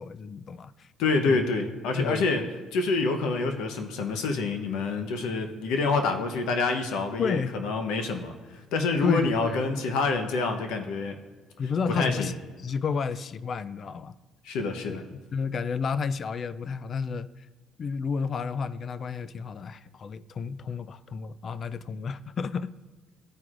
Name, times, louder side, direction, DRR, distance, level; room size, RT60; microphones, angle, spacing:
voice 1, 0.0-0.9 1.3-1.4 1.9-2.3 7.2-7.6 9.0-9.6 11.6-12.3 12.6-14.1 14.8-17.3 17.8-22.7, left 5 dB, 45° left, 16 dB, 0.3 m, -31 dB
voice 2, 1.0-2.5 2.7-11.2 11.9-12.3 14.4-15.1, left 3 dB, 85° left, 6 dB, 0.8 m, -27 dB
13.0 x 4.5 x 2.5 m, 1.4 s
cardioid pair, 100°, 0 cm